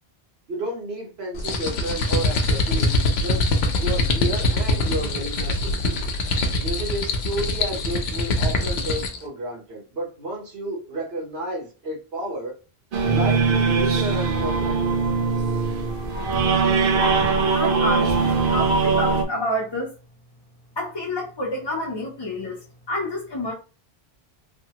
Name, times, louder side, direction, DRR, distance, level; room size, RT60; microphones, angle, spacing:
voice 1, 0.5-3.5 3.8-6.1 6.6-12.5 13.1-15.0, right 1 dB, 85° right, 1.3 m, -31 dB
sound 1, 1.4-9.2, left 2 dB, 90° left, 0.9 m, -23 dB
sound 2, 12.9-19.2, right 4 dB, 65° right, 0.8 m, -21 dB
voice 2, 17.5-19.9 20.8-22.6 22.9-23.5, left 1 dB, 30° left, 0.5 m, -28 dB
3.2 x 2.1 x 2.8 m
omnidirectional pair, 1.0 m